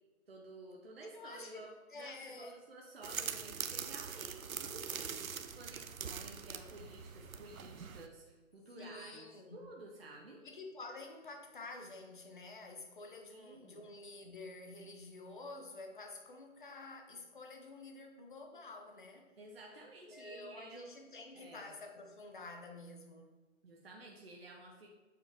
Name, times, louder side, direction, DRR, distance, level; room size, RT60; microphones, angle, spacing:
voice 1, 0.3-10.4 13.3-13.8 19.4-20.9 21.3-21.7 23.6-24.9, right 2 dB, 45° right, -1 dB, 0.8 m, -53 dB
voice 2, 1.1-2.6 8.8-9.7 10.4-19.3 19.7-23.3, left 2 dB, 40° left, 3 dB, 0.8 m, -50 dB
sound 1, 3.0-8.1, right 7 dB, 85° right, 0.7 m, -43 dB
7.3 x 4.7 x 3.5 m, 1.2 s
figure-of-eight pair, 165°, 41 cm